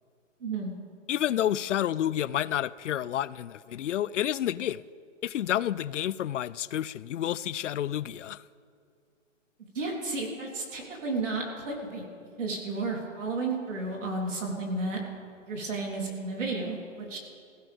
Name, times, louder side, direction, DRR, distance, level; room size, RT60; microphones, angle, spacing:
voice 1, 0.4-0.7 9.7-12.1 12.4-15.0 15.5-17.2, right 3 dB, 70° right, -1 dB, 3.8 m, -32 dB
voice 2, 1.1-4.8 5.2-8.4, left 11 dB, 65° left, 20 dB, 0.5 m, -29 dB
19.5 x 15.5 x 3.6 m, 2.4 s
hypercardioid pair, 175°, 39 cm